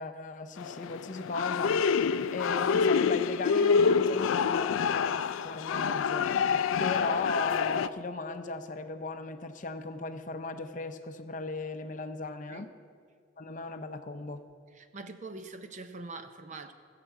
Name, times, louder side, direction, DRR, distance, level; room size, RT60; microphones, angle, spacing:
voice 1, 0.0-12.7 13.4-14.4, left 3 dB, 40° left, 8 dB, 0.6 m, -37 dB
sound 1, 0.6-7.9, left 6 dB, 85° left, 0.3 m, -27 dB
voice 2, 14.7-16.7, right 3 dB, 40° right, 8 dB, 0.6 m, -43 dB
14.5 x 5.9 x 8.3 m, 2.1 s
head